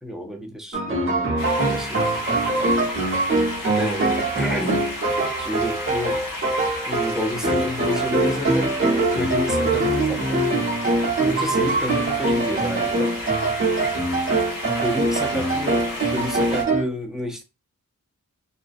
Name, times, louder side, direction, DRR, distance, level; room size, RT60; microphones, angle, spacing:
voice 1, 0.0-2.6 3.8-4.9 5.4-6.2 6.9-8.8 9.1-10.7 11.2-13.2 14.8-17.4, equal, ahead, 0.6 m, -30 dB
sound 1, 0.7-16.8, right 2 dB, 40° right, 0.7 m, -23 dB
sound 2, 1.4-16.6, left 2 dB, 90° left, 0.9 m, -33 dB
2.5 x 2.0 x 2.5 m
wide cardioid pair, 75°, 33 cm